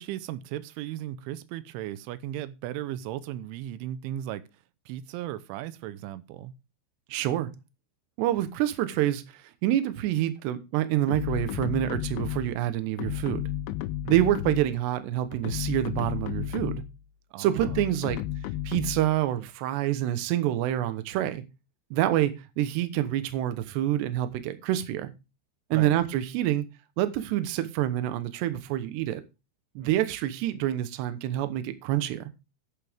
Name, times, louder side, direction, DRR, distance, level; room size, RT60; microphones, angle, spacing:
voice 1, 0.0-6.5 14.0-14.3 17.3-17.8 25.7-26.0, right 13 dB, 90° right, 3.2 m, -37 dB
voice 2, 7.1-7.5 8.2-13.4 14.1-16.8 17.4-18.2 18.7-21.4 21.9-25.1 25.7-26.7 27.0-29.2 29.8-32.3, right 13 dB, 75° right, 3.0 m, -27 dB
sound 1, 11.1-12.6 13.0-14.8 15.3-17.0 17.6-19.2, left 12 dB, 80° left, 3.0 m, -33 dB
11.0 x 9.7 x 3.5 m
omnidirectional pair, 5.4 m